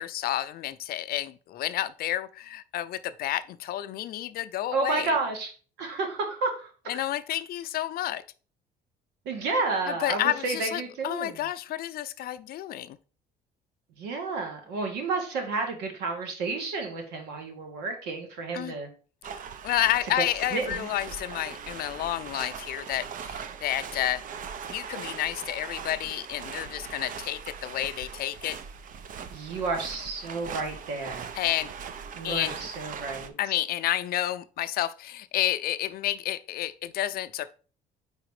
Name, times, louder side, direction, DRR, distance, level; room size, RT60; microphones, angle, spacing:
voice 1, 0.0-5.1 6.9-8.2 9.9-13.0 18.5-18.7 19.6-24.2 24.7-28.6 31.3-31.7 32.2-32.5 33.4-37.5, left 13 dB, 65° left, 0.5 m, -30 dB
voice 2, 4.7-5.5 5.8-7.1 9.2-11.4 14.0-18.9 20.1-20.2 20.5-20.9 29.3-31.3 32.1-33.3, right 3 dB, 90° right, 1.7 m, -31 dB
sound 1, 19.2-33.3, right 7 dB, 50° right, 0.6 m, -40 dB
4.9 x 4.1 x 4.8 m
cardioid pair, 110°, 17 cm